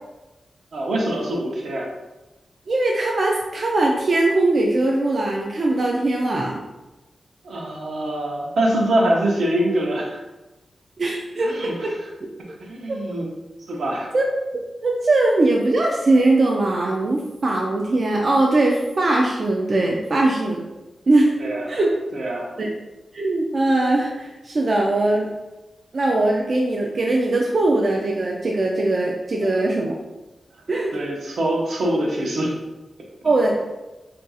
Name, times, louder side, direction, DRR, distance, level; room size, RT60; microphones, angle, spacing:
voice 1, 0.7-1.9 7.4-10.2 11.4-12.1 12.6-13.3 13.7-14.1 21.4-21.8 22.1-22.5 29.4-29.8 30.9-32.5, right 1 dB, 75° right, -1 dB, 0.7 m, -24 dB
voice 2, 2.7-6.6 11.0-11.5 12.5-12.6 14.1-14.2 14.5-20.6 21.1-21.3 21.7-21.9 22.6-22.7 23.1-25.3 25.9-29.9 30.7-30.9 33.2-33.6, right 2 dB, 45° right, -1 dB, 0.3 m, -20 dB
2.5 x 2.3 x 3.9 m, 1.1 s
wide cardioid pair, 155°, 0 cm